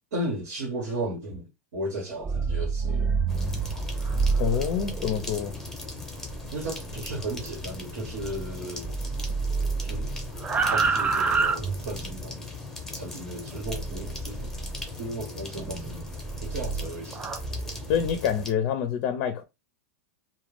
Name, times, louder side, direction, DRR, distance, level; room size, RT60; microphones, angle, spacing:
voice 1, 0.1-3.2 6.5-8.9 9.8-10.1 10.7-12.4 12.9-14.5 15.0-16.1 16.4-17.2, right 1 dB, 80° right, 1.2 m, -35 dB
sound 1, 2.1-8.6 8.8-12.2 13.6-14.9 15.5-18.2, right 4 dB, 15° right, 0.3 m, -29 dB
sound 2, 3.3-18.5, left 3 dB, 5° left, 0.9 m, -39 dB
voice 2, 4.4-5.6 17.9-19.4, left 8 dB, 50° left, 0.5 m, -26 dB
2.4 x 2.2 x 3.2 m
hypercardioid pair, 120°, 8 cm